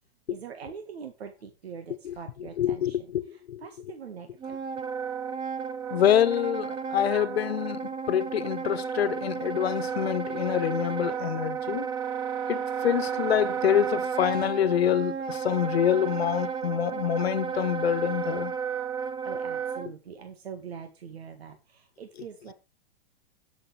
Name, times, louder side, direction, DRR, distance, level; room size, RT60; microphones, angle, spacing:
voice 1, 0.3-4.5 19.2-22.5, right 7 dB, 90° right, 1.8 m, -43 dB
voice 2, 2.6-3.6 5.9-11.9 12.5-18.5, left 10 dB, 85° left, 1.2 m, -26 dB
Wind instrument woodwind instrument, 4.4-19.9, right 6 dB, 15° right, 0.5 m, -32 dB
17.0 x 7.1 x 3.4 m
hypercardioid pair, 145°, 30 cm